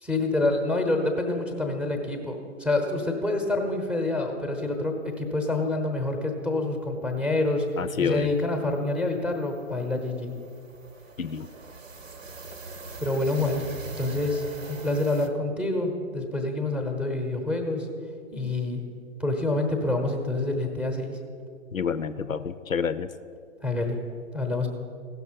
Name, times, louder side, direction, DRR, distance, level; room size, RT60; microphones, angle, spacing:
voice 1, 0.0-7.7 8.0-10.3 13.0-13.6 14.0-17.9 18.3-18.8 19.2-21.1 23.6-24.0 24.3-24.7, left 2 dB, 5° right, 3 dB, 0.8 m, -27 dB
sound 1, 6.9-7.0 7.3-7.5 7.7-15.3, right 3 dB, 70° right, 1.0 m, -42 dB
voice 2, 7.8-8.3 11.2-11.5 21.7-23.1, left 6 dB, 85° left, 13 dB, 0.6 m, -28 dB
16.0 x 6.0 x 5.6 m, 2.3 s
figure-of-eight pair, 115°, 40 cm